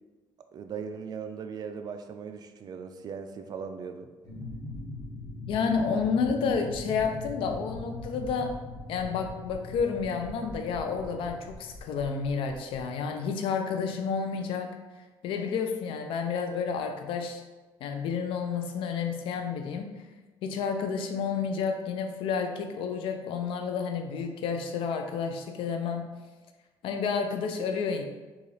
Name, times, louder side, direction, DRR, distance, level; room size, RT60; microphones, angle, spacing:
voice 1, 0.5-4.1, right 6 dB, 50° right, 7 dB, 0.3 m, -38 dB
sound 1, 4.2-12.8, left 2 dB, 35° left, 1.2 m, -41 dB
voice 2, 5.5-8.6 8.9-14.7 15.2-17.4 17.8-19.9 20.4-26.1 26.8-28.0, left 5 dB, 75° left, 5 dB, 0.4 m, -30 dB
3.9 x 2.4 x 3.2 m, 1.2 s
cardioid pair, 90°, 9 cm